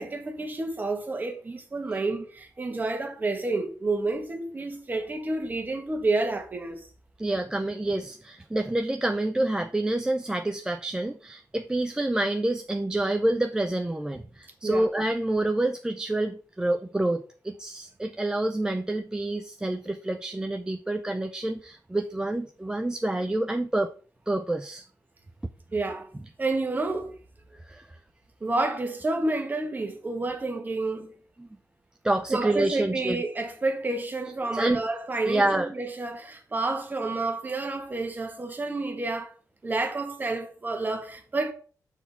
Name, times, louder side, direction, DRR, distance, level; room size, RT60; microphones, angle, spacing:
voice 1, 0.0-6.8 14.6-14.9 25.7-26.1 26.4-27.2 28.4-31.1 32.3-39.3 39.6-41.5, right 2 dB, 30° right, 1.5 m, -29 dB
voice 2, 7.2-23.9 24.3-24.8 27.7-28.0 31.4-31.5 32.0-33.2 34.5-34.8 35.2-35.7, right 1 dB, 10° right, 0.5 m, -27 dB
6.0 x 4.5 x 5.5 m
wide cardioid pair, 115°, 6 cm